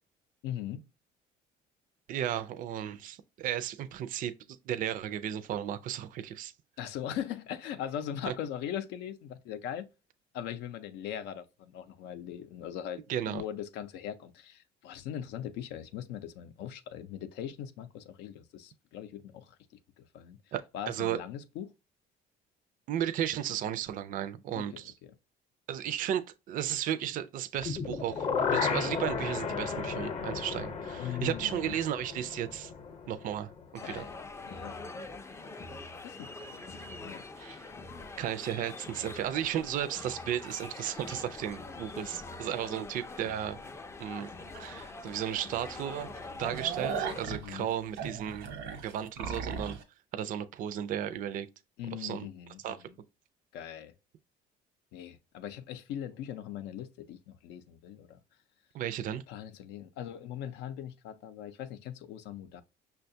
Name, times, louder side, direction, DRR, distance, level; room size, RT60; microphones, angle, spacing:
voice 1, 0.4-0.9 6.8-9.9 10.3-19.6 20.0-21.7 24.5-25.1 31.0-31.7 33.8-34.2 34.4-34.8 36.0-37.2 47.3-47.7 51.8-53.0 53.5-53.9 54.9-58.2 59.3-62.6, left 10 dB, 90° left, 0.5 m, -40 dB
voice 2, 2.1-4.3 4.7-6.5 8.3-8.4 13.1-13.4 20.5-20.6 20.9-21.2 22.9-24.9 25.7-32.7 33.1-33.5 33.8-34.1 37.4-37.7 38.2-43.6 44.0-44.3 44.6-46.1 46.4-48.5 48.8-49.8 50.1-51.5 51.9-52.3 52.6-52.8 58.7-59.2, right 10 dB, 55° right, 0.4 m, -34 dB
sound 1, 27.6-33.6 33.9-34.0, left 6 dB, 40° left, 0.7 m, -34 dB
sound 2, 33.7-47.3, left 3 dB, 15° left, 0.3 m, -44 dB
sound 3, 44.5-44.7 45.1-45.2 45.6-45.7 46.1-49.8, right 6 dB, 90° right, 0.8 m, -37 dB
5.6 x 2.2 x 2.6 m
cardioid pair, 110°, 17 cm